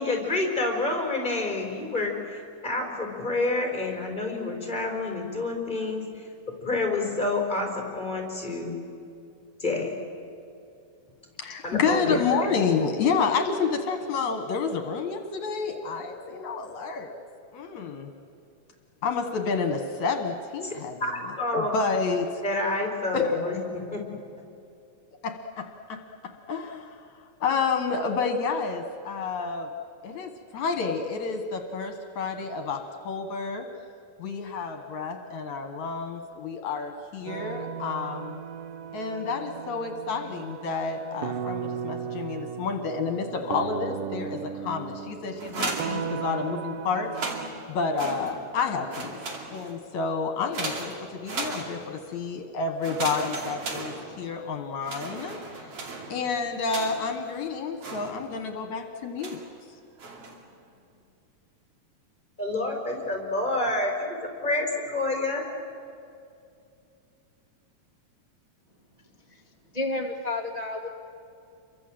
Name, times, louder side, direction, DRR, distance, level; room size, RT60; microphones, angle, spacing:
voice 1, 0.0-6.3 6.6-8.7 9.6-10.0 11.6-12.6 20.6-20.7 21.0-21.8 22.4-24.0 62.4-65.5, left 2 dB, 15° left, 1 dB, 4.6 m, -28 dB
voice 2, 11.4-17.1 17.5-18.1 19.0-22.4 23.1-23.3 25.2-26.0 26.5-27.1 27.4-29.7 30.0-33.7 34.2-38.4 38.9-47.1 47.7-49.2 49.5-55.8 56.1-59.4, left 5 dB, 65° left, 6 dB, 2.7 m, -29 dB
sound 1, 37.3-47.5, right 7 dB, 90° right, 2.9 m, -36 dB
sound 2, 45.4-46.6 47.0-48.6 48.9-49.9 50.5-52.1 52.8-54.5 54.8-57.2 57.8-58.5 59.2-59.6 60.0-60.5, right 3 dB, 50° right, 3.5 m, -36 dB
voice 3, 69.7-70.9, left 2 dB, 25° right, 0 dB, 0.8 m, -31 dB
29.0 x 23.5 x 7.8 m, 2.5 s
omnidirectional pair, 3.7 m